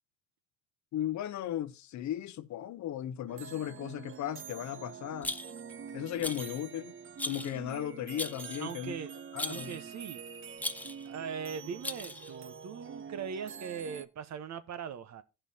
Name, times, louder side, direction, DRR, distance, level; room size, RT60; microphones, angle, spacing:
voice 1, 0.9-5.3 5.9-6.9 7.2-9.0 9.3-9.8, left 11 dB, 70° left, 0.7 m, -36 dB
sound 1, 3.3-14.1, right 7 dB, 45° right, 0.8 m, -46 dB
Rattle, 5.2-5.7 6.2-6.6 7.2-7.6 8.2-8.7 9.4-9.8 10.6-11.1 11.8-12.4, left 1 dB, 5° left, 0.6 m, -38 dB
voice 2, 8.6-9.1 9.5-10.2 11.0-15.2, right 7 dB, 65° right, 1.1 m, -40 dB
15.5 x 5.6 x 2.8 m
cardioid pair, 90°, 30 cm